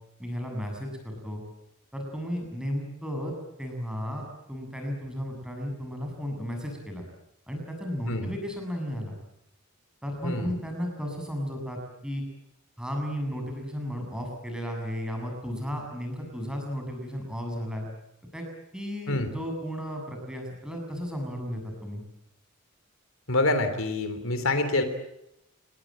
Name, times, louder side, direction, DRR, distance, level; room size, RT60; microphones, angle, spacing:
voice 1, 0.2-1.4 1.9-3.3 3.6-7.0 7.5-9.1 10.0-12.2 12.8-17.9 18.3-18.4 18.7-22.0, equal, 5° right, 2 dB, 7.6 m, -34 dB
voice 2, 10.2-10.6 19.1-19.3 23.3-24.8, left 2 dB, 65° left, 9 dB, 3.4 m, -26 dB
29.5 x 20.0 x 8.8 m, 0.85 s
head